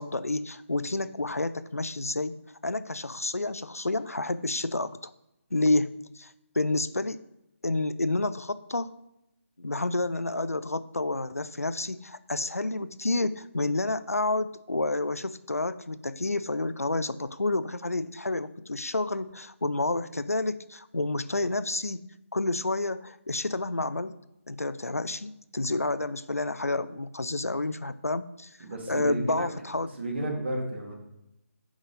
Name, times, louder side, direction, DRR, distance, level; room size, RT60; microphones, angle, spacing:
voice 1, 0.0-2.3 2.6-5.1 5.5-7.2 7.6-8.9 9.6-24.2 24.5-28.5 28.9-29.9, left 2 dB, 85° left, 14 dB, 0.4 m, -29 dB
voice 2, 28.6-29.5 30.0-30.9, right 1 dB, 50° right, 1 dB, 2.1 m, -32 dB
6.1 x 5.5 x 4.9 m, 0.88 s
figure-of-eight pair, 150°, 8 cm